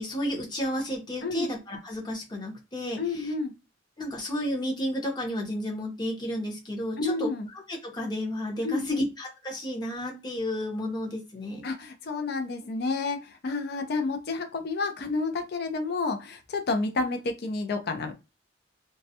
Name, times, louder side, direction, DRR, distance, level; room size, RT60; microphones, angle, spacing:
voice 1, 0.0-3.3 4.0-7.3 7.7-11.7, equal, 25° left, 0 dB, 0.7 m, -32 dB
voice 2, 3.0-3.5 7.0-7.5 8.6-9.1 11.6-18.1, left 3 dB, 55° left, 6 dB, 0.4 m, -30 dB
2.2 x 2.1 x 2.7 m, 0.27 s
head